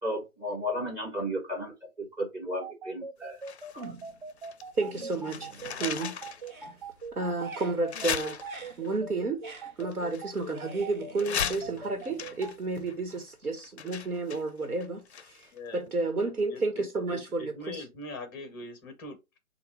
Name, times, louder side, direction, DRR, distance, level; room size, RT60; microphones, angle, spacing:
voice 1, 0.0-3.4 3.7-3.8, equal, 10° right, 1.5 m, -34 dB
sound 1, 2.6-12.5, right 4 dB, 40° right, 0.6 m, -41 dB
sound 2, 3.4-4.7 4.9-6.5 7.0-7.1 7.9-8.9 9.8-10.8 11.2-15.6 15.9-16.0, left 7 dB, 50° left, 0.5 m, -37 dB
sound 3, 3.8-4.3 4.7-6.1 6.3-12.9, right 3 dB, 65° right, 1.3 m, -48 dB
voice 2, 4.8-5.5 5.8-6.2 7.2-8.4 8.8-9.4 9.8-15.5 15.7-17.8, right 3 dB, 80° right, 1.2 m, -31 dB
voice 3, 16.2-19.4, left 2 dB, 15° left, 0.7 m, -42 dB
6.8 x 2.3 x 3.2 m
figure-of-eight pair, 135°, 43 cm